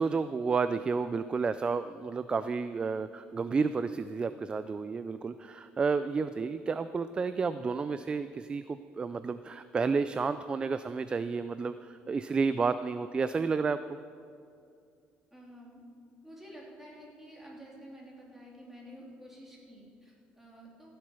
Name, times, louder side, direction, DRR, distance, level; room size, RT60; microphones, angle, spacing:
voice 1, 0.0-13.8, right 4 dB, 25° right, 12 dB, 0.3 m, -31 dB
voice 2, 15.3-15.8 16.2-20.9, equal, 5° right, -3 dB, 3.2 m, -50 dB
16.0 x 7.6 x 5.5 m, 2.4 s
cardioid pair, 120°, 4 cm